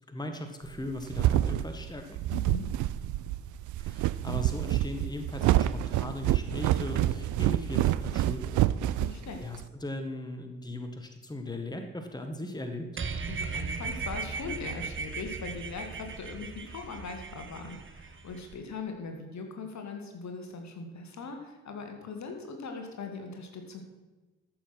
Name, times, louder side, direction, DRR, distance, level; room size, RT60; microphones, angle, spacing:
voice 1, 0.1-2.0 3.8-9.0 9.4-12.9, left 1 dB, 10° left, 6 dB, 1.6 m, -38 dB
sound 1, 0.7-9.7, right 13 dB, 60° right, 0.5 m, -27 dB
voice 2, 2.3-2.7 9.0-9.4 13.3-23.8, left 4 dB, 55° left, 4 dB, 2.1 m, -40 dB
sound 2, 13.0-18.6, right 5 dB, 35° right, 1.2 m, -37 dB
13.0 x 6.9 x 6.0 m, 1.2 s
hypercardioid pair, 40°, 34 cm